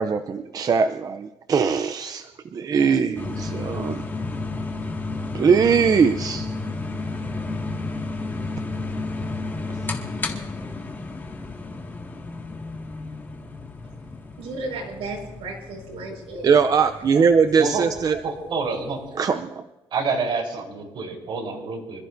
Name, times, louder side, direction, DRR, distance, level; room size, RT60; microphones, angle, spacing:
voice 1, 0.0-4.0 5.3-6.5 16.4-18.2 19.2-19.6, right 6 dB, 35° right, 10 dB, 0.6 m, -21 dB
sound 1, 3.2-19.1, left 3 dB, 20° left, 1.9 m, -32 dB
voice 2, 14.1-16.8 17.1-17.7, right 2 dB, 75° right, 0 dB, 5.2 m, -35 dB
voice 3, 18.2-19.0 19.9-22.0, right 4 dB, 55° right, 1 dB, 3.9 m, -27 dB
26.0 x 14.0 x 2.7 m, 1.1 s
cardioid pair, 120°, 10 cm